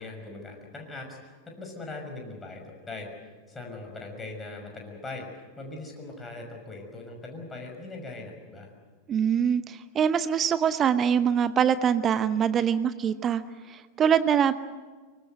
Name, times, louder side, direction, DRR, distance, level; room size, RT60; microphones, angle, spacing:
voice 1, 0.0-8.7, left 2 dB, 15° left, 2 dB, 6.2 m, -40 dB
voice 2, 9.1-13.4 13.7-14.5, right 8 dB, 25° right, 14 dB, 0.8 m, -24 dB
24.5 x 21.0 x 8.0 m, 1.4 s
figure-of-eight pair, 90°, 0 cm